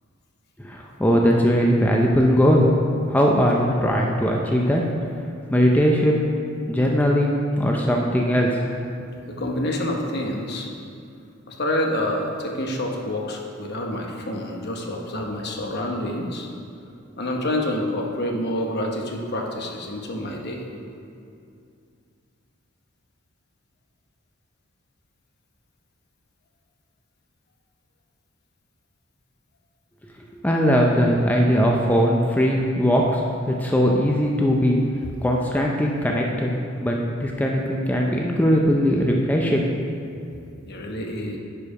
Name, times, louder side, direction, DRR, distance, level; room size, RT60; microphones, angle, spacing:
voice 1, 0.6-2.7 3.1-4.8 5.5-6.2 6.7-8.6 30.4-33.2 33.5-34.8 35.2-36.5 36.8-39.7, equal, 10° left, -1 dB, 0.5 m, -20 dB
voice 2, 9.3-10.7 11.5-16.5 17.2-20.6 40.7-41.4, left 1 dB, 55° left, 1 dB, 1.0 m, -27 dB
10.0 x 4.8 x 4.8 m, 2.5 s
head